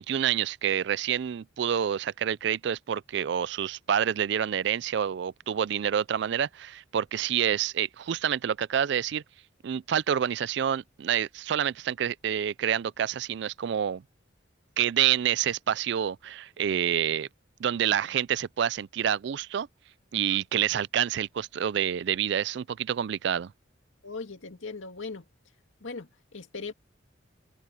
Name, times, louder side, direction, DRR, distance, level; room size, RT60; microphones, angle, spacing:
voice 1, 0.0-9.2 9.6-14.0 14.8-17.3 17.6-19.7 20.1-23.5, right 9 dB, 60° right, 0.3 m, -28 dB
voice 2, 24.0-25.2 25.8-26.7, left 4 dB, 90° left, 2.1 m, -39 dB
head